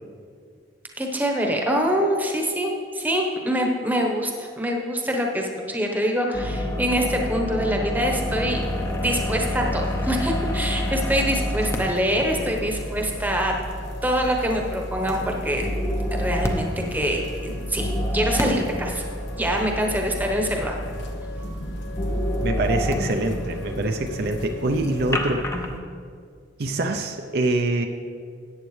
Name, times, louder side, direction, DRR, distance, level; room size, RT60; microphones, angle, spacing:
voice 1, 1.0-8.6 9.0-13.5 14.0-15.7 16.1-19.0 19.3-20.7, equal, 10° right, 1 dB, 1.0 m, -25 dB
sound 1, 6.3-25.8, equal, 15° left, 0.7 m, -29 dB
sound 2, 8.5-25.1, left 2 dB, 75° left, 1.0 m, -38 dB
voice 2, 22.4-25.6 26.6-27.9, right 2 dB, 55° right, 4 dB, 0.5 m, -25 dB
14.0 x 8.9 x 3.2 m, 2.1 s
head